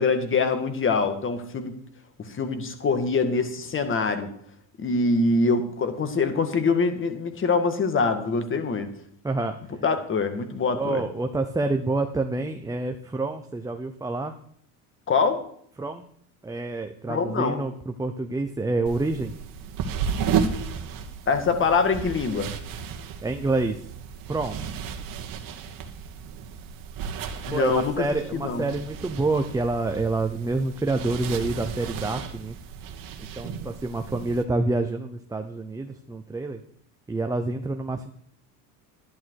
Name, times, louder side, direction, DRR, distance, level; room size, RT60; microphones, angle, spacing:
voice 1, 0.0-1.7 2.2-4.3 4.8-8.9 9.8-11.0 15.1-15.4 17.1-17.6 21.3-22.5 27.5-27.9 28.3-28.6, left 4 dB, 30° left, 8 dB, 1.9 m, -24 dB
voice 2, 9.2-9.5 10.7-14.3 15.8-16.0 16.4-19.3 23.2-23.8 24.3-24.6 27.5-32.6 33.2-36.6 37.1-38.1, right 2 dB, 10° right, 5 dB, 0.8 m, -27 dB
sound 1, 18.8-34.4, right 6 dB, 55° right, 1.8 m, -33 dB
11.5 x 11.0 x 4.8 m, 0.65 s
supercardioid pair, 110°, 40 cm